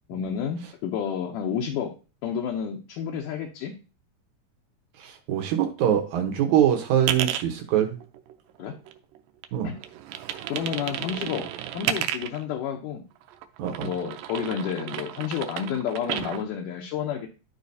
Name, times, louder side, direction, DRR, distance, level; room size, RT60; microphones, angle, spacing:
voice 1, 0.1-1.9 2.2-3.7 8.6-8.7 9.6-9.8 10.5-11.5 11.7-13.0 13.8-17.3, left 8 dB, 75° left, 1 dB, 2.2 m, -30 dB
voice 2, 5.0-8.0 9.5-9.7 13.6-13.9, right 10 dB, 65° right, 5 dB, 2.3 m, -23 dB
sound 1, 7.0-7.4 8.0-9.2 9.4-12.4 13.2-16.4, right 11 dB, 85° right, 2.4 m, -32 dB
11.5 x 5.0 x 2.7 m, 0.32 s
omnidirectional pair, 4.0 m